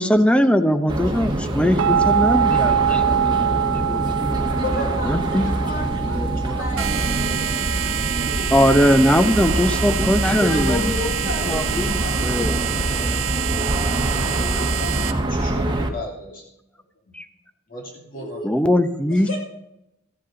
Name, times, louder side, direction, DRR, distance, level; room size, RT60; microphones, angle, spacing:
voice 1, 0.0-3.3 3.7-4.0 5.1-5.5 6.2-6.8 8.5-10.9 11.5-12.6 17.1-17.2 18.4-19.3, equal, 5° left, 9 dB, 0.7 m, -20 dB
sound 1, 0.9-15.9, right 1 dB, 20° right, 1.3 m, -25 dB
sound 2, 1.8-13.3, right 8 dB, 70° right, 0.4 m, -25 dB
voice 2, 4.6-6.3 6.6-8.2 10.3-15.2 18.1-18.5 19.1-19.4, left 2 dB, 85° left, -2 dB, 6.0 m, -34 dB
sound 3, 6.8-15.1, right 7 dB, 85° right, 1.0 m, -26 dB
voice 3, 15.3-16.4 17.1-17.2 17.7-18.4, left 2 dB, 45° left, 0 dB, 2.5 m, -36 dB
14.5 x 8.3 x 5.1 m, 0.84 s
head